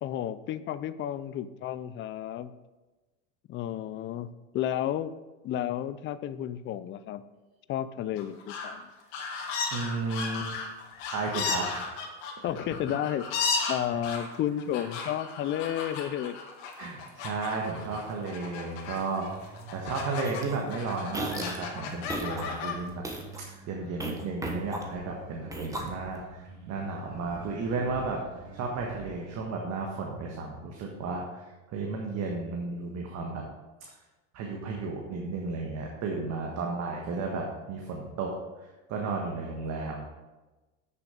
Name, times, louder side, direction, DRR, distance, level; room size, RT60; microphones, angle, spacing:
voice 1, 0.0-2.5 3.5-5.1 5.4-7.2 7.7-8.9 12.4-13.3 13.7-16.4 36.2-36.5, left 11 dB, 30° left, 14 dB, 0.4 m, -32 dB
sound 1, 8.2-8.8 9.1-20.4 20.7-22.7, left 5 dB, 75° left, 2.1 m, -35 dB
voice 2, 9.7-10.5 11.1-11.8 16.8-23.0 23.7-28.2 28.5-31.5 31.7-33.4 34.3-38.3 38.9-40.1, right 3 dB, 45° right, 0 dB, 1.5 m, -33 dB
sound 2, 19.2-29.5, right 3 dB, 75° right, 2.7 m, -48 dB
sound 3, 20.2-20.6 21.1-21.6 22.1-22.4 22.9-23.4 24.0-25.1 25.5-26.2, right 1 dB, 10° right, 1.4 m, -36 dB
8.2 x 6.8 x 5.1 m, 1.2 s
supercardioid pair, 120°, 37 cm